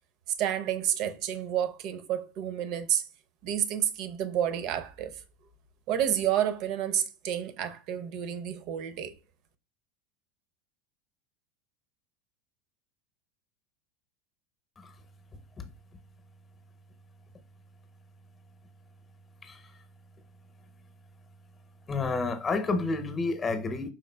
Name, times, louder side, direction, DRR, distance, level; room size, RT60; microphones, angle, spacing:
voice 1, 0.4-3.1 3.4-5.2 5.9-9.1, right 10 dB, 50° right, 0.6 m, -30 dB
voice 2, 19.4-19.8 21.9-23.9, left 3 dB, 25° left, 0.8 m, -30 dB
5.0 x 3.6 x 2.2 m
figure-of-eight pair, 80°, 0 cm